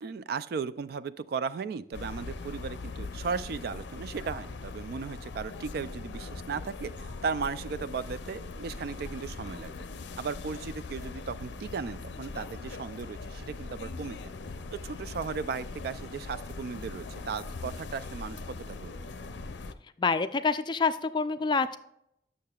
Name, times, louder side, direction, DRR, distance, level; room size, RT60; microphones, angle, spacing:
voice 1, 0.0-9.7 10.2-14.2 14.7-18.9, right 5 dB, 60° right, 15 dB, 0.3 m, -36 dB
sound 1, 1.9-19.7, left 3 dB, 85° left, 0.5 m, -41 dB
voice 2, 20.0-21.8, left 4 dB, 25° left, 11 dB, 0.3 m, -27 dB
8.5 x 6.4 x 2.3 m, 0.75 s
head